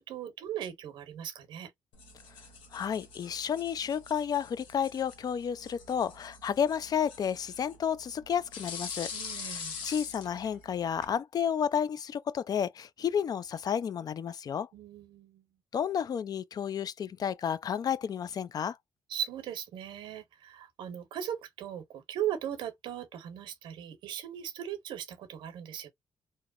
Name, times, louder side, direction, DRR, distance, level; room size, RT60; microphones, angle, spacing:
voice 1, 0.0-1.7 9.1-9.8 14.7-15.5 19.1-25.9, right 10 dB, 75° right, 0.8 m, -38 dB
sound 1, 1.9-11.1, left 5 dB, 85° left, 0.7 m, -45 dB
voice 2, 2.7-9.1 9.8-14.7 15.7-18.8, left 8 dB, 50° left, 0.3 m, -31 dB
2.8 x 2.1 x 2.3 m
supercardioid pair, 50°, 8 cm